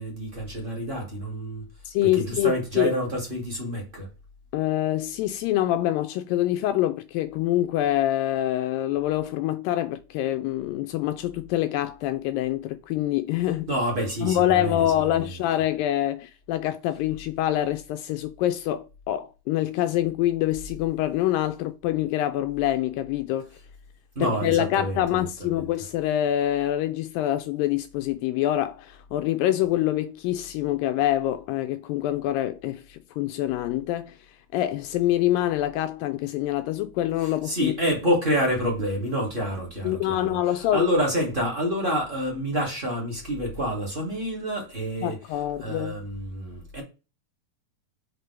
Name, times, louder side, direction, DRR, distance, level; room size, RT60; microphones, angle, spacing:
voice 1, 0.0-1.6 2.0-4.1 13.7-15.3 24.1-25.6 37.2-45.2 45.6-46.8, equal, 20° right, 1.7 m, -28 dB
voice 2, 1.9-2.9 4.5-13.7 14.2-23.5 24.2-34.1 34.5-37.7 39.8-40.8 45.0-46.0, left 13 dB, 80° left, 2.1 m, -25 dB
6.6 x 4.4 x 3.3 m
omnidirectional pair, 4.2 m